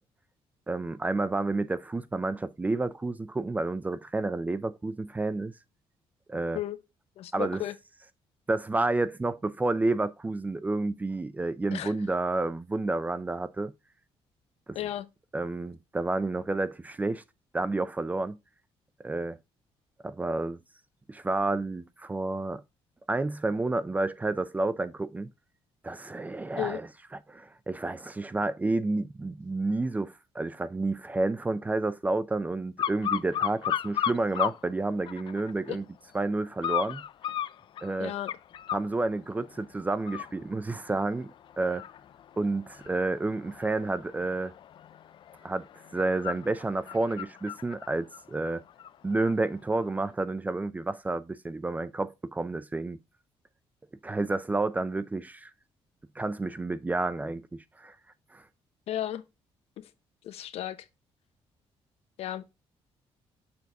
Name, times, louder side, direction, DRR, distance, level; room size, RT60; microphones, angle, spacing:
voice 1, 0.7-5.5 6.3-6.6 7.3-7.6 8.5-13.7 15.3-17.2 17.5-18.4 19.0-19.4 20.0-20.6 21.1-22.6 23.1-25.3 25.8-26.9 27.3-35.8 36.1-37.0 37.8-38.1 38.7-41.3 41.6-41.8 42.4-44.5 45.4-45.7 45.9-48.6 49.0-53.0 54.0-55.5 56.2-57.9 58.3-58.4, right 2 dB, 15° right, 0.4 m, -30 dB
voice 2, 7.2-7.7 11.7-11.9 14.7-15.1 26.6-26.8 35.7-35.8 38.0-38.3 58.9-59.2 59.8-59.9 60.2-60.9 62.2-62.4, left 12 dB, 75° left, 0.8 m, -34 dB
sound 1, 32.8-34.6 35.0-35.7 36.6-38.9 39.4-39.6 40.0-49.3 49.7-49.8, left 10 dB, 50° left, 0.4 m, -35 dB
6.9 x 4.0 x 4.6 m
cardioid pair, 125°, 11 cm